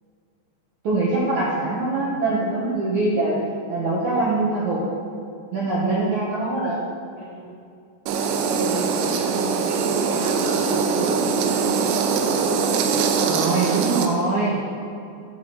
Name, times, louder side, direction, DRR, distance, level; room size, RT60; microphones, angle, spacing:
voice 1, 0.8-3.4 3.7-4.8 5.5-6.8 13.2-14.6, right 2 dB, 70° right, -6 dB, 1.8 m, -23 dB
voice 2, 1.6-2.4 7.2-7.5 8.4-11.9 12.2-12.4, equal, 40° left, -10 dB, 3.2 m, -34 dB
sound 1, 8.1-14.1, right 5 dB, 90° right, 3.0 m, -22 dB
10.5 x 4.7 x 7.4 m, 2.4 s
omnidirectional pair, 5.0 m